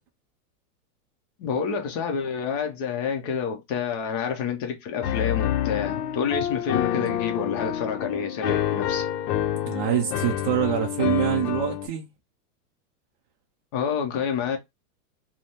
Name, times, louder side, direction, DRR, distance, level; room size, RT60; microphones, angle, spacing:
voice 1, 1.4-9.1 13.7-14.6, left 6 dB, 25° left, 0.5 m, -28 dB
Piano, 5.0-11.9, left 11 dB, 90° left, 0.6 m, -27 dB
voice 2, 6.9-7.2 9.5-12.1, right 10 dB, 35° right, 0.4 m, -26 dB
3.3 x 2.1 x 2.7 m
supercardioid pair, 150°, 46 cm